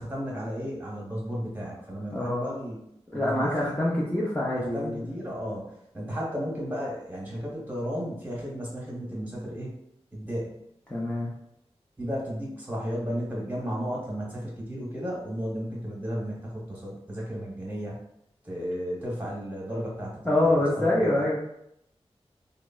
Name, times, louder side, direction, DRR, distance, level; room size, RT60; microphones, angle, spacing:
voice 1, 0.0-2.8 3.1-3.8 4.7-5.6 5.9-9.7 10.1-10.5 12.0-18.0 18.4-20.5 20.8-21.1, equal, 15° right, -4 dB, 1.1 m, -34 dB
voice 2, 2.1-2.6 3.1-5.1 10.9-11.3 20.2-21.3, left 1 dB, 10° left, -6 dB, 0.6 m, -25 dB
3.2 x 2.0 x 2.3 m, 0.77 s
wide cardioid pair, 55°, 11 cm